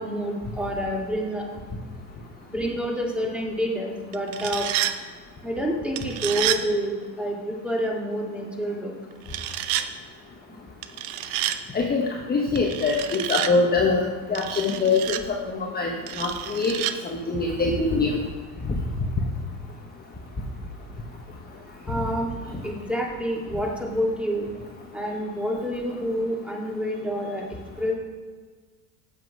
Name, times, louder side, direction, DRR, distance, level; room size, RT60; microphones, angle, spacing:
voice 1, 0.0-1.5 2.5-4.7 5.4-8.9 21.9-24.5 24.9-27.9, equal, ahead, -1 dB, 2.2 m, -28 dB
sound 1, 4.1-4.9 6.0-6.6 9.3-9.9 10.8-11.6 12.6-13.5 14.3-15.2 16.1-16.9, right 12 dB, 60° right, 0.8 m, -29 dB
voice 2, 12.3-15.2 15.5-16.8 17.0-18.2, left 3 dB, 20° left, 0 dB, 1.1 m, -23 dB
8.4 x 7.4 x 4.8 m, 1.5 s
hypercardioid pair, 85°, 47 cm